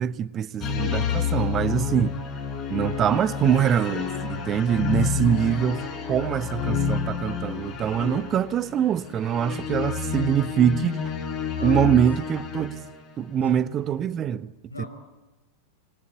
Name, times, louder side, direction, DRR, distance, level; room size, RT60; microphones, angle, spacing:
voice 1, 0.0-2.2 2.7-11.0 11.6-12.9 13.2-14.5 14.8-14.9, right 9 dB, 30° right, 0.8 m, -24 dB
sound 1, 0.6-13.1, left 7 dB, 30° left, 4.4 m, -29 dB
voice 2, 11.6-12.1 13.4-13.7 14.7-14.9, left 1 dB, 80° left, 5.3 m, -39 dB
26.5 x 22.0 x 8.4 m
figure-of-eight pair, 90°, 0 cm